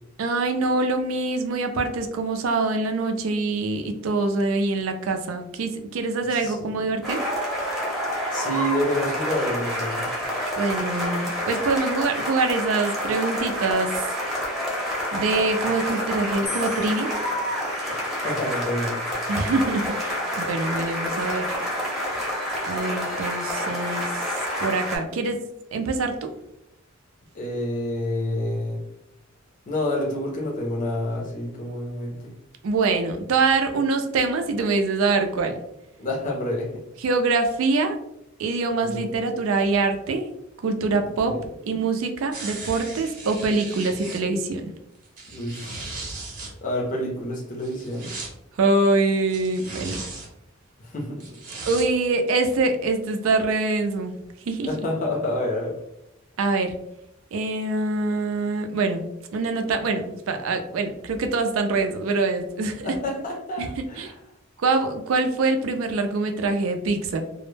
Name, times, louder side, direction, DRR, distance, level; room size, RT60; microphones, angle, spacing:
voice 1, 0.2-7.3 10.6-13.9 15.1-17.2 19.3-21.5 22.7-24.1 24.6-25.4 25.7-26.3 32.6-35.6 37.0-38.0 38.4-40.3 40.6-41.4 41.6-44.7 48.6-50.0 51.7-54.2 54.5-54.7 56.4-56.8 57.3-62.9 63.6-63.7 64.0-64.1 64.6-67.2, right 3 dB, 90° right, 6 dB, 0.4 m, -24 dB
voice 2, 6.3-6.7 8.3-10.1 18.2-19.0 27.3-28.8 29.7-32.3 36.0-36.8 38.8-39.1 41.0-41.4 45.3-46.1 46.6-48.1 50.8-51.3 54.7-55.8 62.8-64.2, left 1 dB, 40° left, 0 dB, 0.5 m, -28 dB
sound 1, 7.0-25.0, equal, ahead, 0.6 m, -28 dB
sound 2, 16.5-18.7 19.5-20.0, left 6 dB, 85° left, 0.9 m, -41 dB
sound 3, 42.3-44.2 45.0-46.5 47.6-48.3 49.3-50.3 51.2-51.9 52.5-52.6, right 3 dB, 45° right, 0.7 m, -37 dB
2.0 x 2.0 x 3.1 m, 0.82 s
head